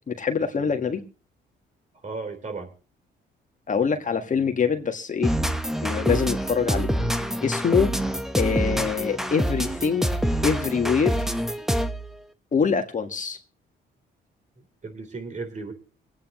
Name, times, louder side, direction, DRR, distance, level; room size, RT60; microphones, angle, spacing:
voice 1, 0.1-1.0 3.7-5.3 5.8-6.9 7.4-7.9 8.4-10.1 10.4-11.3 12.5-13.4, left 6 dB, 40° left, 1.6 m, -24 dB
voice 2, 2.0-2.7 14.6-15.7, right 4 dB, 35° right, 3.8 m, -35 dB
sound 1, 5.2-12.1, equal, ahead, 1.0 m, -26 dB
25.0 x 9.1 x 3.0 m
cardioid pair, 90°, 20 cm